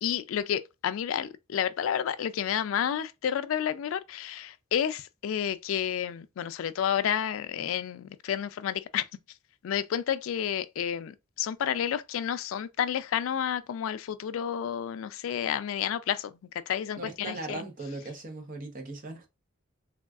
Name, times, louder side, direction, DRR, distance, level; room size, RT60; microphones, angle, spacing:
voice 1, 0.0-9.0 9.6-16.3 16.7-17.6, left 9 dB, 75° left, 0.3 m, -30 dB
voice 2, 17.0-19.3, right 2 dB, 40° right, 0.8 m, -38 dB
3.5 x 2.3 x 2.3 m
head